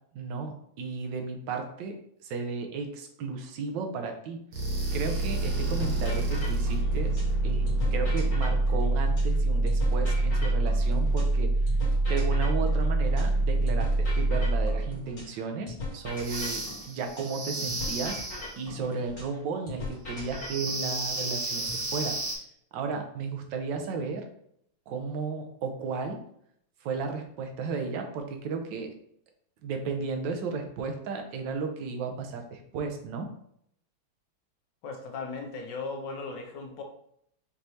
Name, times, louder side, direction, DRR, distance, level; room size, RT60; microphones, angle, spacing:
voice 1, 0.1-2.0 2.2-4.4 4.9-11.5 12.1-18.2 18.6-22.2 22.7-24.3 24.9-26.2 26.8-28.9 29.6-33.3, right 5 dB, 70° right, 4 dB, 1.3 m, -34 dB
sound 1, 4.5-14.9 16.2-18.6 20.2-22.4, right 2 dB, 50° right, 1.3 m, -27 dB
sound 2, 5.8-7.4 7.7-11.4 11.7-15.4 15.7-19.4 19.7-21.8, left 2 dB, 50° left, 2.0 m, -40 dB
voice 2, 34.8-36.8, left 4 dB, 70° left, 2 dB, 1.3 m, -37 dB
5.4 x 3.1 x 2.7 m, 0.69 s
omnidirectional pair, 2.2 m